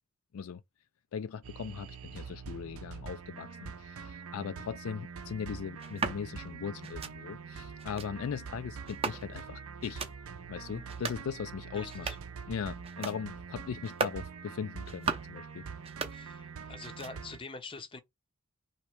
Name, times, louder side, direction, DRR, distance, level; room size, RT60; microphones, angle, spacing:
voice 1, 1.1-10.0 10.5-12.1 12.5-15.6, left 7 dB, 65° left, 0.3 m, -39 dB
sound 1, 1.4-17.4, right 5 dB, 70° right, 0.5 m, -44 dB
sound 2, 5.8-6.2 6.8-7.2 7.8-8.1 8.9-9.5 9.8-10.2 10.8-11.3 11.8-12.4 12.8-13.2 13.8-14.2 14.8-15.4 15.8-16.5 16.8-17.4, right 5 dB, 25° right, 0.6 m, -38 dB
voice 2, 11.7-12.2 16.1-18.0, left 3 dB, 25° left, 0.6 m, -45 dB
3.2 x 2.9 x 4.6 m
head